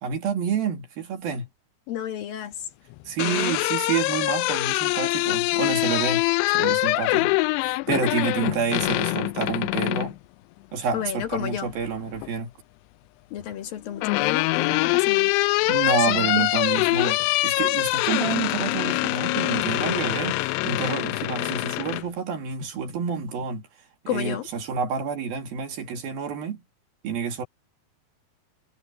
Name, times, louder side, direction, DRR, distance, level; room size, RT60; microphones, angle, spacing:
voice 1, 0.0-1.5 3.1-6.2 6.5-7.3 7.6-10.2 10.7-12.5 14.8-14.9 15.7-20.4 20.6-23.7 24.0-26.6 27.0-27.4, right 6 dB, 65° right, 4.3 m, -28 dB
voice 2, 1.9-2.7 10.9-11.7 13.3-15.3 16.1-16.5 24.1-24.5, left 11 dB, 65° left, 3.2 m, -31 dB
sound 1, 2.9-10.1 11.6-12.3 13.5-22.0, left 23 dB, 85° left, 2.7 m, -24 dB
omnidirectional pair, 4.8 m